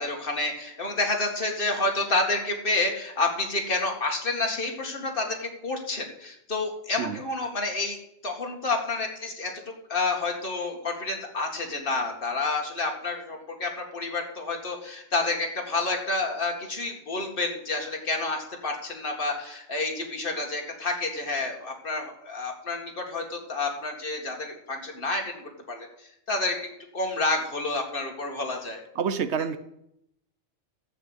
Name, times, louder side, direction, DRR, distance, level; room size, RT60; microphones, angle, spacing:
voice 1, 0.0-26.6 26.9-28.8, left 3 dB, 50° left, 1 dB, 2.3 m, -29 dB
voice 2, 28.9-29.6, right 6 dB, 70° right, 12 dB, 1.1 m, -28 dB
12.5 x 7.3 x 8.0 m, 0.79 s
omnidirectional pair, 1.2 m